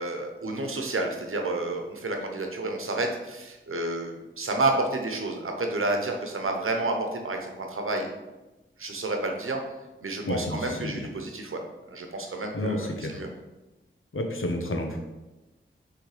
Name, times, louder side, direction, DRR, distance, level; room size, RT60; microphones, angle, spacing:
voice 1, 0.0-8.1 8.8-9.6 10.0-13.3, right 2 dB, 85° right, 3 dB, 1.0 m, -30 dB
voice 2, 10.3-11.1 12.5-13.2 14.1-15.0, left 1 dB, 75° left, 2 dB, 1.1 m, -30 dB
6.8 x 3.6 x 5.0 m, 1.1 s
wide cardioid pair, 75°, 21 cm